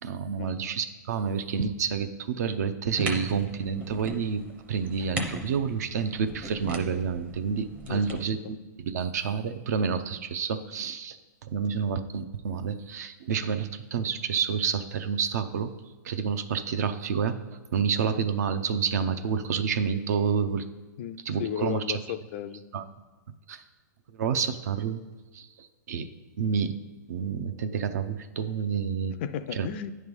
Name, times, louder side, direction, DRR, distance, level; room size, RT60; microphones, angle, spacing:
voice 1, 0.0-8.6 8.9-15.7 16.0-17.4 17.7-20.6 21.2-22.0 22.7-22.9 23.5-23.6 24.1-25.0 25.3-26.1 26.4-26.7 27.1-29.2 29.5-29.7, right 6 dB, 60° right, 9 dB, 0.6 m, -29 dB
sound 1, 2.9-8.2, right 1 dB, 15° right, 0.6 m, -38 dB
voice 2, 7.9-8.5 21.0-22.6 29.2-29.9, left 9 dB, 40° left, 12 dB, 0.4 m, -35 dB
9.5 x 3.2 x 5.3 m, 1.3 s
hypercardioid pair, 150°, 10 cm